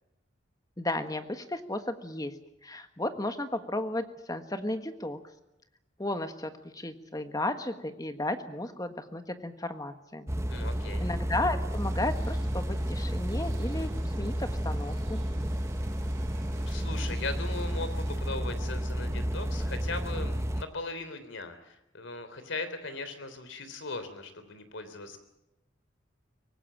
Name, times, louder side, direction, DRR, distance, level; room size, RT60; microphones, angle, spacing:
voice 1, 0.8-2.3 2.6-5.2 6.0-10.3 11.0-15.2, left 2 dB, 20° left, 8 dB, 1.5 m, -34 dB
sound 1, 10.3-20.6, equal, 15° right, 1.0 m, -31 dB
voice 2, 10.5-11.1 16.6-25.2, left 3 dB, 70° left, 10 dB, 3.4 m, -39 dB
sound 2, 11.7-18.2, right 4 dB, 75° right, 4.5 m, -55 dB
24.0 x 18.5 x 8.8 m, 0.88 s
head